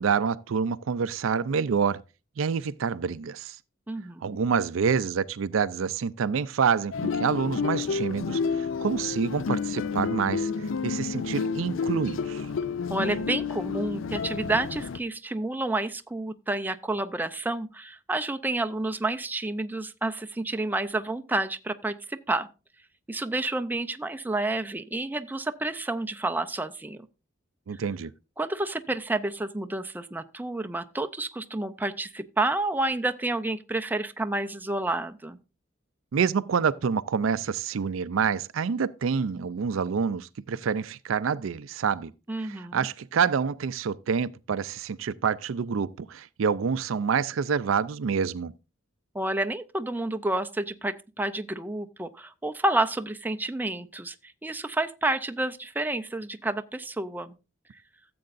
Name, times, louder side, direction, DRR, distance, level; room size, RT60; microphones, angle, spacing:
voice 1, 0.0-2.0 2.4-3.6 4.2-12.5 27.7-28.1 36.1-42.1 42.4-48.5, right 6 dB, 80° right, 0.4 m, -27 dB
voice 2, 3.9-4.4 12.9-22.5 23.1-27.1 28.4-35.4 42.3-42.9 49.1-57.3, right 2 dB, 10° right, 0.5 m, -30 dB
sound 1, 6.9-15.0, left 5 dB, 75° left, 0.5 m, -30 dB
14.5 x 7.7 x 2.5 m
head